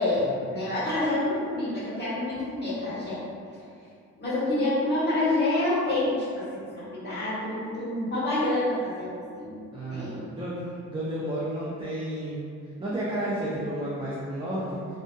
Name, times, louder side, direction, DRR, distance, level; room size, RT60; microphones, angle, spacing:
voice 1, 0.0-3.2 3.5-3.6 4.2-10.3, left 2 dB, 35° left, -10 dB, 1.3 m, -28 dB
voice 2, 9.7-12.4 12.8-15.0, right 1 dB, 20° right, -8 dB, 0.4 m, -32 dB
2.6 x 2.3 x 2.2 m, 2.3 s
cardioid pair, 90°, 30 cm